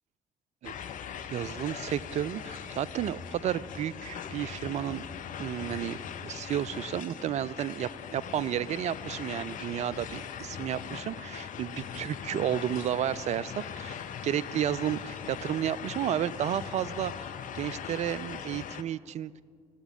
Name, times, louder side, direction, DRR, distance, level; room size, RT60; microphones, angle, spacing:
sound 1, 0.6-18.8, left 8 dB, 45° left, 0.6 m, -40 dB
voice 1, 1.3-5.0 5.4-6.0 6.2-17.3 17.5-19.4, right 10 dB, 40° right, 18 dB, 0.4 m, -32 dB
17.0 x 7.0 x 5.3 m, 2.1 s
figure-of-eight pair, 45°, 18 cm